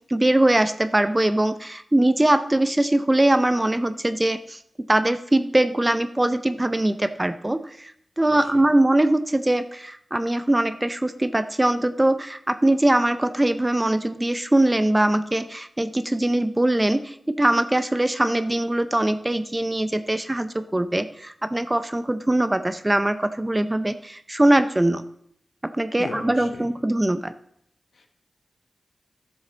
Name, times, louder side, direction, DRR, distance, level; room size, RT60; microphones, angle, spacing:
voice 1, 0.1-4.6 4.9-7.9 8.2-25.0 25.6-27.3, right 1 dB, 20° right, 11 dB, 0.5 m, -22 dB
voice 2, 8.2-8.7 26.0-26.7 27.9-28.1, left 3 dB, 75° left, 5 dB, 1.2 m, -37 dB
13.0 x 7.1 x 4.0 m, 0.70 s
wide cardioid pair, 75°, 0 cm